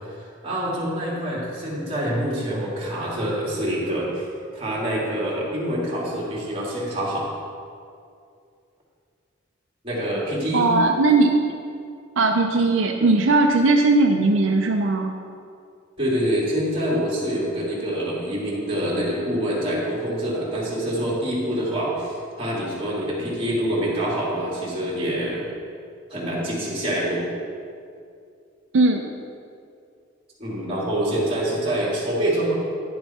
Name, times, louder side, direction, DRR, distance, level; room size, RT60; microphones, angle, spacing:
voice 1, 0.4-4.3 4.5-7.3 9.8-10.7 16.0-25.5 26.1-27.2 30.4-32.5, right 1 dB, 30° right, -5 dB, 2.4 m, -26 dB
voice 2, 10.5-11.5 12.2-15.1 28.7-29.0, right 3 dB, 80° right, 3 dB, 0.6 m, -18 dB
10.5 x 6.9 x 4.2 m, 2.4 s
head